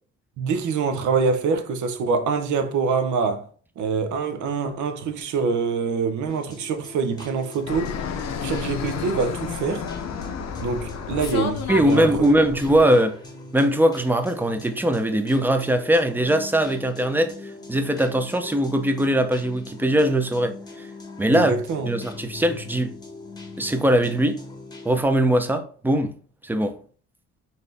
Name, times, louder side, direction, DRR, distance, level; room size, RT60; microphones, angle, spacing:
voice 1, 0.4-3.5 3.8-7.9 8.4-9.9 10.6-12.3 21.3-21.9, right 5 dB, 75° right, 0.7 m, -25 dB
sound 1, 6.3-25.0, left 4 dB, 15° left, 0.9 m, -41 dB
Fixed-wing aircraft airplane, 7.7-12.8, left 6 dB, 60° left, 0.6 m, -31 dB
voice 2, 11.7-13.2 13.5-17.3 17.7-20.9 21.2-21.5 21.8-23.0 23.6-24.4 24.8-26.1 26.4-26.8, right 1 dB, 5° right, 0.5 m, -21 dB
4.1 x 2.7 x 3.4 m
cardioid pair, 90°, 30 cm